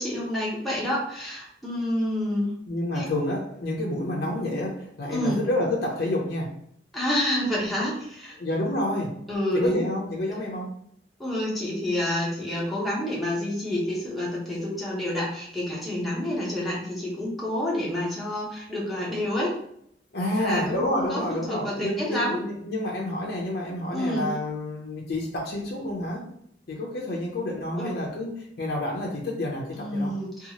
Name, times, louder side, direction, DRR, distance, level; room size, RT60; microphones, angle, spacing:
voice 1, 0.0-2.5 2.9-3.1 5.1-5.4 6.9-8.4 9.3-9.8 11.2-19.5 20.3-22.4 23.9-24.3 27.7-27.9 29.7-30.5, left 1 dB, ahead, -7 dB, 0.7 m, -28 dB
voice 2, 2.7-6.5 8.4-9.2 9.5-10.7 20.1-26.3 26.7-28.3 28.6-30.1, left 1 dB, 60° left, -2 dB, 0.5 m, -29 dB
2.7 x 2.4 x 2.8 m, 0.70 s
head